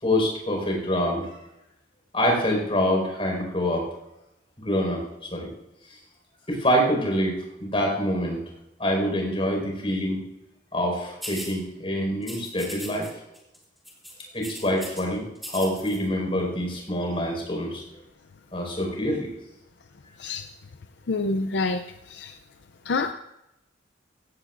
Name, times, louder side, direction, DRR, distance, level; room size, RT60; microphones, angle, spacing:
voice 1, 0.0-1.3 2.1-3.9 4.6-5.0 5.3-5.5 6.5-8.4 8.8-10.2 10.7-13.1 14.3-17.8 18.5-19.3, equal, 30° left, 0 dB, 5.0 m, -25 dB
sound 1, 11.2-11.5 12.2-13.1 13.3-13.6 13.8-15.0 15.4-16.0, equal, ahead, 3.1 m, -38 dB
voice 2, 21.1-22.3 22.9-23.1, left 3 dB, 75° left, 8 dB, 0.6 m, -27 dB
16.5 x 16.0 x 2.6 m, 0.88 s
head